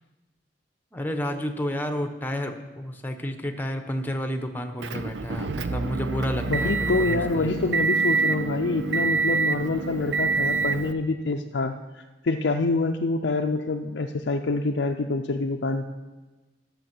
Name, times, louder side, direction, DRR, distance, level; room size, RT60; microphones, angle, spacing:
voice 1, 0.9-7.5, equal, 10° left, 6 dB, 1.0 m, -31 dB
Motor vehicle (road) / Engine, 4.8-10.9, right 4 dB, 85° right, 0.6 m, -26 dB
voice 2, 6.5-15.9, left 3 dB, 80° left, 2 dB, 0.6 m, -26 dB
13.5 x 7.1 x 6.1 m, 1.2 s
head